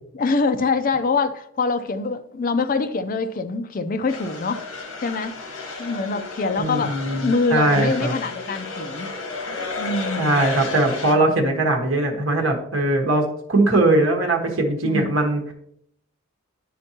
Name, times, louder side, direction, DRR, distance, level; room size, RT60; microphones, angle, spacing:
voice 1, 0.1-9.1 9.8-10.3 14.8-15.2, left 3 dB, 40° left, 10 dB, 0.4 m, -25 dB
sound 1, 4.1-11.2, left 3 dB, 80° left, 1.1 m, -32 dB
voice 2, 6.6-8.1 10.2-15.5, right 2 dB, 65° right, 2 dB, 1.3 m, -20 dB
10.0 x 4.4 x 2.8 m, 0.72 s
head